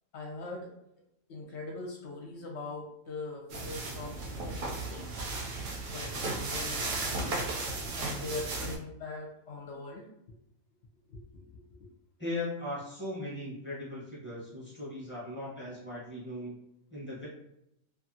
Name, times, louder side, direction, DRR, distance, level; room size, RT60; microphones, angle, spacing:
voice 1, 0.1-0.7 1.3-5.1 5.3-5.4 5.9-7.4 7.7-10.1 11.1-11.5 11.8-11.9, left 3 dB, 65° left, 0 dB, 0.8 m, -41 dB
sound 1, 3.5-8.8, right 3 dB, 65° right, 0.7 m, -35 dB
voice 2, 12.2-16.6 16.9-17.3, left 1 dB, 10° left, -7 dB, 0.8 m, -38 dB
2.6 x 2.5 x 2.7 m, 0.79 s
omnidirectional pair, 1.4 m